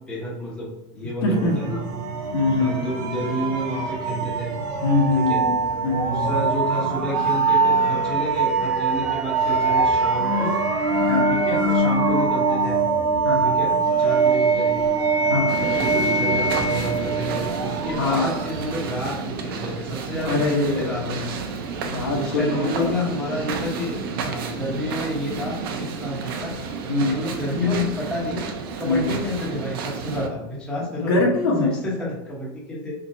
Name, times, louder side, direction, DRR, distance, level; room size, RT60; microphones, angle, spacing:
voice 1, 0.1-1.8 2.6-4.5 5.1-5.4 6.1-10.5 11.3-12.8 13.4-13.7 14.0-14.8 15.5-21.2 22.1-26.6 27.1-28.5 28.8-31.2 31.6-32.9, left 1 dB, 5° left, -6 dB, 1.0 m, -29 dB
voice 2, 1.2-1.6 2.3-3.2 4.8-5.6 5.8-6.3 11.1-11.3 13.2-13.6 15.3-15.6 17.9-18.3 20.2-21.3 21.8-22.9 26.9-27.2 28.8-29.2 31.0-31.8, left 2 dB, 85° left, 0 dB, 1.3 m, -23 dB
sound 1, 1.3-18.8, right 3 dB, 30° right, 0.6 m, -23 dB
sound 2, 15.5-30.3, right 5 dB, 65° right, 0.8 m, -31 dB
4.4 x 3.9 x 2.7 m, 0.96 s
supercardioid pair, 180°, 13 cm